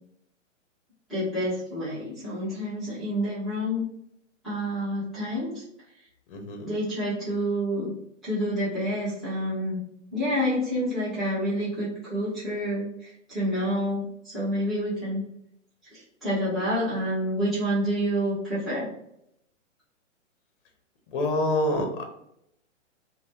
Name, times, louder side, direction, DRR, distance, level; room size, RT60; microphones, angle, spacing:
voice 1, 1.1-3.8 4.4-5.6 6.6-7.9 8.2-9.8 10.1-15.2 15.9-18.9, equal, ahead, -13 dB, 0.8 m, -28 dB
voice 2, 6.3-6.7 21.1-22.0, left 1 dB, 45° left, 4 dB, 0.7 m, -26 dB
2.7 x 2.1 x 3.4 m, 0.75 s
hypercardioid pair, 150°, 38 cm